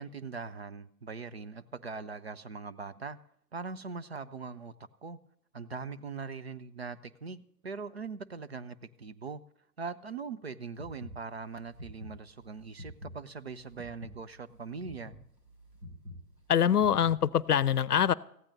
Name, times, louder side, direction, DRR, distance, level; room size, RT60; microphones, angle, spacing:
voice 1, 0.0-3.2 3.5-4.7 5.0-5.2 5.5-9.4 9.8-15.2, right 4 dB, 40° right, 13 dB, 0.5 m, -41 dB
sound 1, 10.7-17.5, left 1 dB, 85° right, 4.9 m, -48 dB
voice 2, 16.5-18.1, left 8 dB, 70° left, 21 dB, 0.6 m, -24 dB
18.5 x 15.0 x 2.6 m, 0.70 s
figure-of-eight pair, 130°, 49 cm